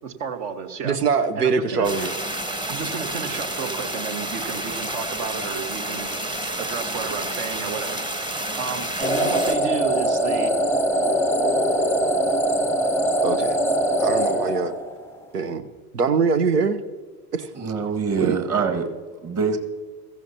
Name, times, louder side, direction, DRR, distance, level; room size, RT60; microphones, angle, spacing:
voice 1, 0.0-1.0 1.3-1.9 2.7-6.1 6.6-8.3 8.6-10.5, right 6 dB, 60° right, 1.5 m, -32 dB
voice 2, 0.8-2.1 13.2-13.6 14.0-14.7 15.3-15.7 15.9-16.8 17.3-17.5 18.2-18.4, right 5 dB, 85° right, 0.8 m, -22 dB
sound 1, 1.8-9.6, right 1 dB, 10° right, 0.9 m, -30 dB
sound 2, 9.0-15.1, right 1 dB, 5° left, 0.4 m, -22 dB
voice 3, 17.5-18.9 19.2-19.6, right 5 dB, 30° right, 1.8 m, -24 dB
16.5 x 14.5 x 2.8 m
figure-of-eight pair, 75°, 46 cm